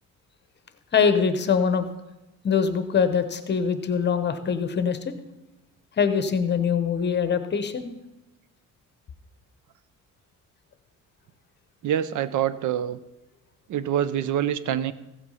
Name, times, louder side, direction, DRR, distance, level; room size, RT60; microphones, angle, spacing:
voice 1, 0.9-1.9 2.4-5.0 6.0-7.9, left 6 dB, 30° left, 10 dB, 0.9 m, -23 dB
voice 2, 11.8-13.0 13.7-14.9, right 10 dB, 60° right, 16 dB, 0.7 m, -25 dB
15.0 x 7.9 x 5.6 m, 0.96 s
cardioid pair, 155°, 34 cm